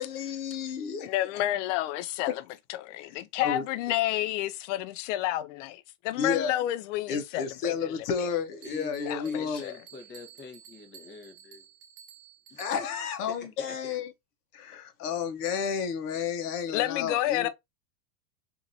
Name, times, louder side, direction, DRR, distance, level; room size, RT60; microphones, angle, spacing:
voice 1, 0.0-1.1 3.4-3.6 6.2-6.6 7.1-9.6 12.6-14.1 14.5-17.5, left 6 dB, 70° left, 0.9 m, -31 dB
voice 2, 1.0-2.4 2.7-8.3 9.1-9.7 16.7-17.5, left 14 dB, 50° left, 0.5 m, -30 dB
voice 3, 8.6-11.7 12.5-12.9 13.3-14.0, left 2 dB, 25° left, 0.9 m, -45 dB
Bell, 8.6-13.1, right 9 dB, 30° right, 0.5 m, -52 dB
2.8 x 2.6 x 2.6 m
hypercardioid pair, 110°, 47 cm